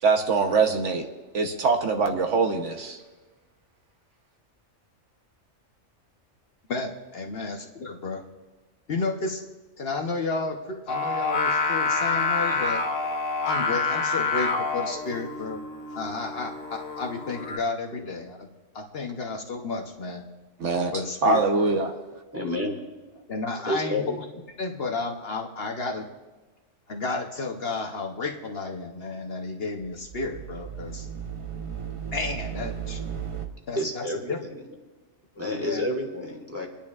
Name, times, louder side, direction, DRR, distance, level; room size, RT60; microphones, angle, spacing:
voice 1, 0.0-1.1 1.3-3.0 20.6-20.9 21.2-21.9, right 4 dB, 70° right, 4 dB, 1.3 m, -23 dB
voice 2, 6.7-8.2 8.9-9.4 9.8-12.8 13.4-15.6 15.9-18.5 18.7-20.2 20.9-21.8 23.3-24.3 24.6-26.1 26.9-31.1 32.1-33.0 33.7-34.4 35.4-35.8, left 3 dB, 55° left, 2 dB, 1.0 m, -32 dB
Singing, 10.9-17.6, left 4 dB, 75° left, 1.2 m, -27 dB
voice 3, 22.3-22.8 23.7-24.2 33.7-34.6 35.4-36.7, left 1 dB, 10° right, 0 dB, 1.8 m, -30 dB
sound 1, 29.8-33.5, right 8 dB, 35° right, 0.6 m, -35 dB
28.0 x 10.0 x 2.4 m, 1.2 s
omnidirectional pair, 1.3 m